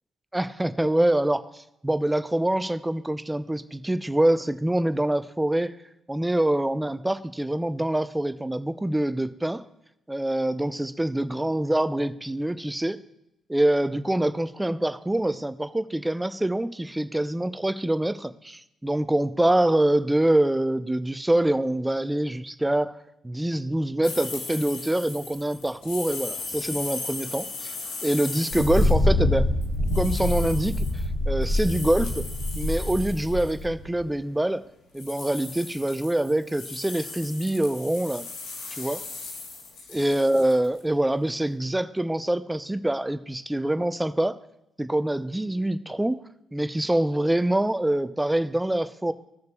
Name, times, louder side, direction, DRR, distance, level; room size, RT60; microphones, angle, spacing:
voice 1, 0.3-5.7 6.1-9.6 10.1-13.0 13.5-22.9 23.2-27.7 28.0-29.5 29.9-30.7 31.3-32.3 32.6-34.6 34.9-38.3 38.8-39.0 39.9-44.4 44.8-46.2 46.5-49.1, right 1 dB, 10° right, 13 dB, 0.6 m, -25 dB
sound 1, 24.0-29.0 29.6-33.6 34.9-40.8, left 3 dB, 80° left, 1.3 m, -38 dB
Thunder, 28.5-34.0, left 1 dB, 55° left, 3.2 m, -25 dB
17.0 x 6.6 x 2.3 m, 0.82 s
hypercardioid pair, 45°, 0 cm